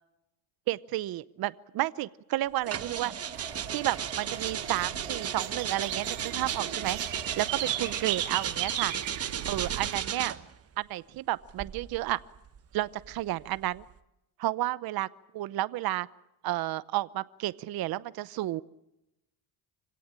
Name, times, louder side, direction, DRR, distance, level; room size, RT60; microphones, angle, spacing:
voice 1, 0.7-3.1 3.7-7.0 7.4-8.9 9.5-10.3 10.8-12.2 12.7-13.8 14.4-15.1 15.3-16.1 16.4-18.6, right 16 dB, 55° right, 17 dB, 0.8 m, -31 dB
sound 1, 2.6-8.8, right 3 dB, 15° right, 1.9 m, -47 dB
sound 2, 2.7-10.5 11.4-13.9, right 8 dB, 30° right, 1.2 m, -35 dB
sound 3, 3.3-9.9, right 11 dB, 75° right, 3.4 m, -37 dB
26.0 x 17.5 x 8.9 m, 0.89 s
cardioid pair, 115°, 45 cm